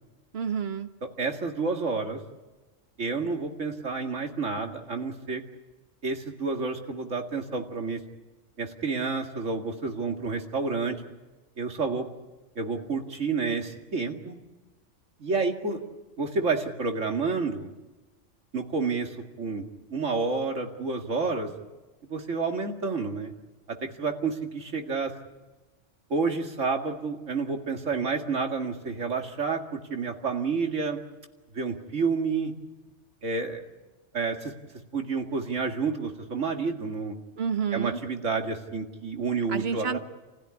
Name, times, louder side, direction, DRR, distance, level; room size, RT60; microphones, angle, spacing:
voice 1, 0.3-0.9 37.4-38.0 39.5-40.0, right 7 dB, 55° right, 8 dB, 1.5 m, -29 dB
voice 2, 1.2-2.2 3.0-5.4 6.0-8.0 8.6-11.0 11.6-12.1 12.6-14.4 15.2-15.8 16.2-17.7 18.5-19.6 19.9-21.5 22.1-23.3 23.7-25.1 26.1-31.0 31.5-32.5 33.2-33.6 34.1-34.5 34.9-37.2 37.7-40.0, right 4 dB, 80° right, 4 dB, 2.5 m, -29 dB
28.5 x 16.0 x 9.8 m, 1.2 s
omnidirectional pair, 1.3 m